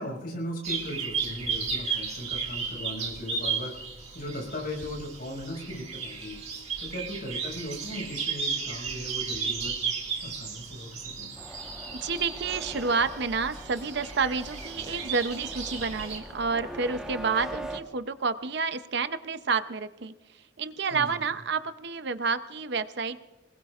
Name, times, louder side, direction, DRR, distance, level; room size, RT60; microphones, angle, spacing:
voice 1, 0.0-3.7 4.1-6.4 6.8-9.8 10.2-11.3 20.9-21.2, equal, 55° left, 0 dB, 5.7 m, -37 dB
sound 1, 0.6-16.2, right 5 dB, 35° right, 2.2 m, -34 dB
sound 2, 11.4-17.8, equal, 5° right, 1.2 m, -41 dB
voice 2, 11.9-23.2, right 4 dB, 60° right, 11 dB, 0.7 m, -29 dB
26.5 x 20.0 x 2.5 m, 1.1 s
head